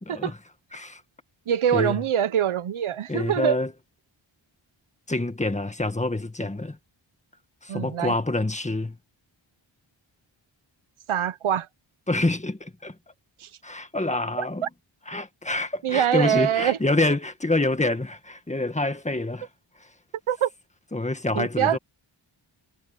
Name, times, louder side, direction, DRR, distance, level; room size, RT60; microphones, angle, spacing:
voice 1, 0.1-0.4 0.7-1.0 1.7-2.0 3.1-3.7 5.1-6.8 7.6-9.0 12.1-13.0 13.6-14.7 15.1-19.5 20.9-21.8, left 2 dB, 15° left, 1.8 m, -27 dB
voice 2, 1.5-3.6 7.7-8.1 11.1-11.7 13.4-13.5 14.4-14.5 15.8-16.8 20.3-20.5 21.3-21.8, right 9 dB, 85° right, 1.0 m, -24 dB
wide cardioid pair, 90°, 48 cm